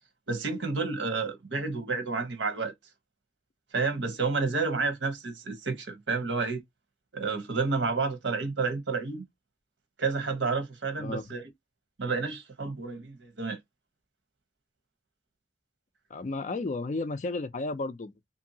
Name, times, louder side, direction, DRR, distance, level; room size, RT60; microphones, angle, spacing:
voice 1, 0.3-2.7 3.7-6.6 7.1-9.2 10.0-11.4 12.0-13.6, right 4 dB, 85° right, 1.0 m, -30 dB
voice 2, 11.0-11.3 16.1-18.3, left 3 dB, 40° left, 0.4 m, -33 dB
2.8 x 2.6 x 2.7 m
head